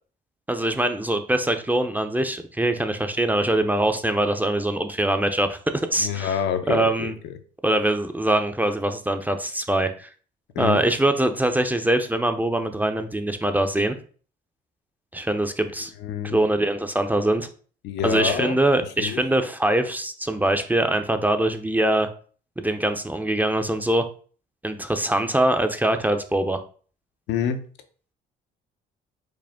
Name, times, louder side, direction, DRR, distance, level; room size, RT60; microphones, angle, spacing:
voice 1, 0.5-6.4 6.7-7.1 7.6-10.1 10.6-14.0 15.1-15.9 16.2-17.5 18.0-22.1 22.6-24.1 24.6-26.6, right 1 dB, 10° right, 7 dB, 0.5 m, -23 dB
voice 2, 6.0-7.4 10.5-10.8 16.0-16.4 17.8-18.6 19.0-19.2 27.3-27.6, left 8 dB, 75° left, 7 dB, 0.7 m, -27 dB
4.9 x 2.1 x 3.5 m, 0.42 s
supercardioid pair, 70°, 19 cm